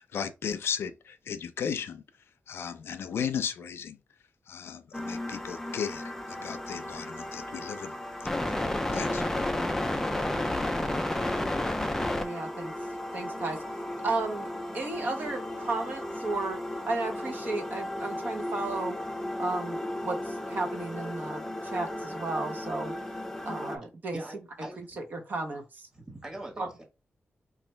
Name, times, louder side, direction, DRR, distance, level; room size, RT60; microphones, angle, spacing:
voice 1, 0.0-2.0 2.5-4.0 4.5-7.9 8.9-9.2, left 7 dB, 80° left, 0.4 m, -35 dB
sound 1, 4.9-23.8, left 1 dB, 10° left, 0.4 m, -33 dB
voice 2, 12.2-12.7 13.1-14.5 14.7-16.6 16.9-19.0 19.4-22.9 23.5-24.2 25.1-25.9 26.6-26.7, right 3 dB, 45° right, 0.8 m, -34 dB
voice 3, 24.1-24.9 25.9-26.8, right 1 dB, 15° right, 1.2 m, -42 dB
3.1 x 2.5 x 4.4 m
wide cardioid pair, 165°, 4 cm